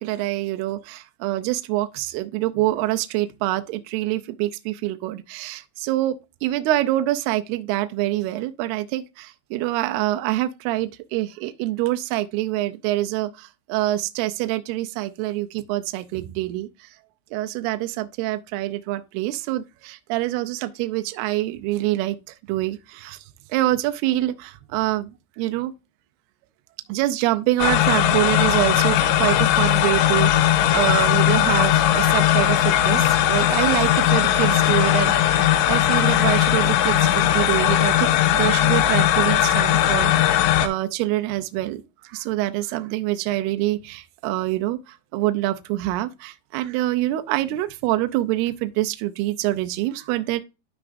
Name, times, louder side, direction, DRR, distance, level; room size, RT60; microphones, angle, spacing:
voice 1, 0.0-6.2 6.4-16.9 17.3-23.2 23.5-25.1 25.4-25.7 26.9-50.4, right 16 dB, 80° right, 2.4 m, -25 dB
sound 1, 27.6-40.7, left 11 dB, 90° left, 3.1 m, -19 dB
12.0 x 4.9 x 2.6 m
omnidirectional pair, 5.1 m